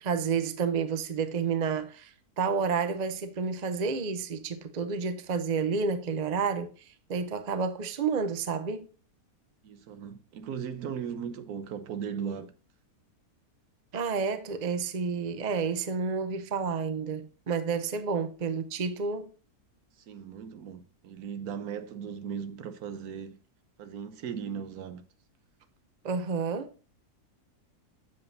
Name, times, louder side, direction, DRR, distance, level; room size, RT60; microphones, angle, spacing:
voice 1, 0.0-2.1 2.4-8.9 13.9-19.3 26.0-26.7, right 5 dB, 45° right, 0.6 m, -30 dB
voice 2, 9.6-12.5 20.1-23.4 23.8-25.0, right 7 dB, 75° right, 1.3 m, -37 dB
7.7 x 7.3 x 2.6 m
omnidirectional pair, 1.6 m